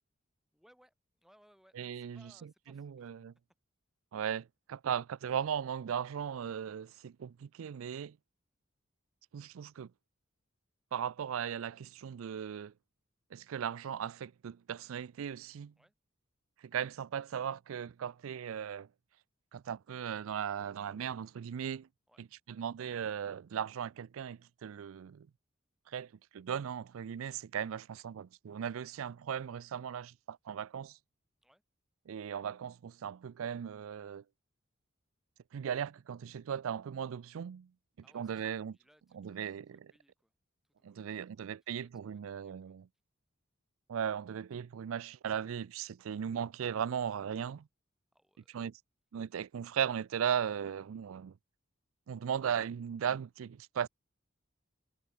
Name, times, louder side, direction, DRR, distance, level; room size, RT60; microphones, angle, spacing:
voice 1, 0.5-3.1 15.8-15.9 22.1-22.3 31.4-31.6 38.0-40.3 40.6-42.8 48.1-48.6, equal, ahead, 6.1 m, -68 dB
voice 2, 1.8-2.2 2.7-3.3 4.1-8.2 9.3-9.9 10.9-12.7 13.3-15.7 16.6-18.9 19.5-21.9 22.5-25.3 25.9-31.0 32.1-34.2 35.5-37.7 38.1-38.8 39.1-39.8 40.8-42.9 43.9-47.7 48.5-48.8 49.1-51.3 52.1-53.9, right 8 dB, 85° right, 0.4 m, -37 dB
head